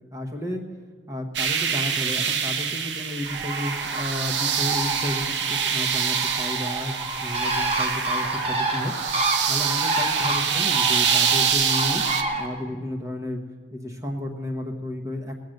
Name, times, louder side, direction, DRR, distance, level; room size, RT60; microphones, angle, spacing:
voice 1, 0.1-0.6 1.1-8.9 9.5-12.0 12.4-13.4 13.7-15.3, left 1 dB, 20° right, 2 dB, 1.2 m, -32 dB
sound 1, 1.3-12.2, right 7 dB, 85° right, 0.8 m, -26 dB
Bird, 3.2-12.5, right 2 dB, 35° right, 1.4 m, -29 dB
19.0 x 7.6 x 6.6 m, 1.5 s
head